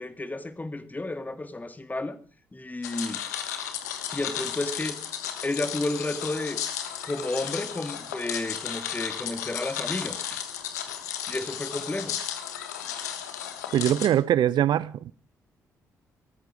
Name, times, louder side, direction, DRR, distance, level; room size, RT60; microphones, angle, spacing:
voice 1, 0.0-2.2 2.5-3.2 4.1-5.0 5.4-6.6 7.0-10.4 11.3-12.2, left 2 dB, 20° left, 2.1 m, -32 dB
sound 1, 2.8-14.1, left 9 dB, 80° left, 1.4 m, -34 dB
voice 2, 13.7-15.1, right 11 dB, 55° right, 0.7 m, -22 dB
19.0 x 14.0 x 4.9 m
figure-of-eight pair, 40°, 9 cm